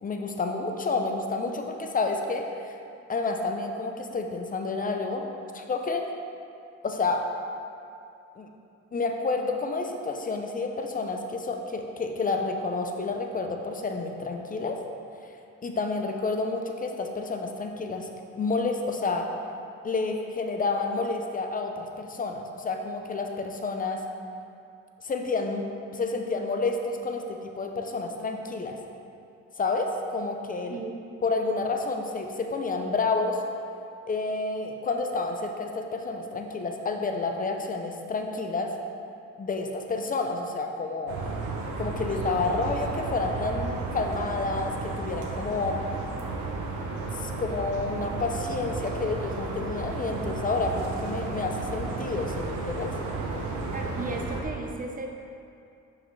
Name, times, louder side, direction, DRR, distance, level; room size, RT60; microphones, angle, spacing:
voice 1, 0.0-2.7 3.1-5.3 5.5-6.1 6.8-7.2 8.4-8.5 8.9-14.8 15.6-18.1 18.4-19.3 19.8-24.0 25.0-25.6 25.9-28.8 29.6-30.8 31.2-33.4 34.1-38.7 39.4-41.3 41.8-45.8 47.2-52.9, left 3 dB, 30° left, 3 dB, 0.6 m, -29 dB
voice 2, 30.7-31.0 53.7-55.1, right 2 dB, 30° right, 2 dB, 0.5 m, -35 dB
sound 1, 41.1-54.4, right 3 dB, 75° right, 0.8 m, -33 dB
5.6 x 5.2 x 3.2 m, 2.5 s
cardioid pair, 90°, 30 cm